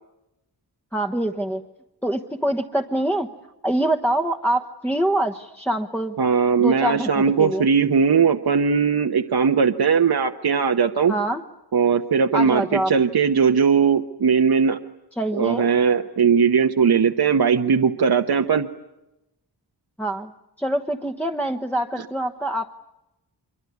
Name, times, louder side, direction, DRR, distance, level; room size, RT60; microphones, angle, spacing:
voice 1, 0.9-1.6 2.0-3.3 3.6-6.2 6.6-7.6 11.1-11.4 12.3-12.9 15.2-15.7 20.0-20.3 20.6-22.7, right 1 dB, 5° left, 4 dB, 1.1 m, -24 dB
voice 2, 6.2-11.1 11.7-14.8 15.3-18.7 22.0-22.1, right 6 dB, 60° right, 5 dB, 1.1 m, -19 dB
25.5 x 23.5 x 9.5 m, 0.93 s
wide cardioid pair, 105°, 42 cm